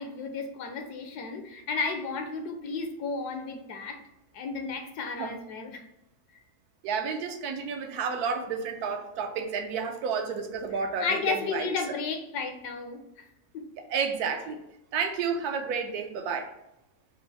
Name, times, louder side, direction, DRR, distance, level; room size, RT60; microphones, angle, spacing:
voice 1, 0.0-4.0 4.3-5.8 11.0-13.0 13.5-13.7, left 4 dB, 75° left, 5 dB, 1.2 m, -33 dB
voice 2, 6.8-11.7 13.9-14.6 14.9-16.5, right 5 dB, 75° right, 6 dB, 1.1 m, -31 dB
4.6 x 2.5 x 4.0 m, 0.87 s
omnidirectional pair, 1.8 m